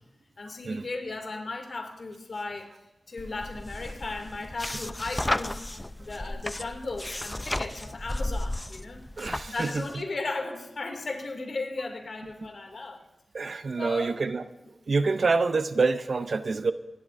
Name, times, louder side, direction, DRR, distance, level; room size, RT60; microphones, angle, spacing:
voice 1, 0.4-2.7 3.1-13.0 13.8-14.2, left 3 dB, 65° left, 3 dB, 2.4 m, -36 dB
sound 1, 3.2-10.0, left 1 dB, 20° left, 0.5 m, -34 dB
voice 2, 9.2-9.8 13.3-14.4 14.9-16.7, right 4 dB, 65° right, 12 dB, 0.6 m, -26 dB
26.0 x 11.5 x 2.6 m, 1.0 s
cardioid pair, 60°, 0 cm